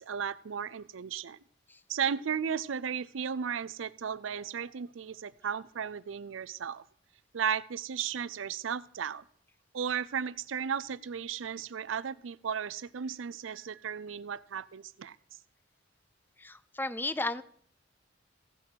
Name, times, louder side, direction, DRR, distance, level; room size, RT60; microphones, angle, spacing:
voice 1, 0.0-1.4 1.9-6.8 7.3-9.2 9.7-15.2, right 7 dB, 80° right, 18 dB, 0.5 m, -35 dB
voice 2, 16.4-17.4, left 2 dB, 10° left, 15 dB, 0.5 m, -34 dB
16.0 x 6.0 x 6.3 m, 0.63 s
head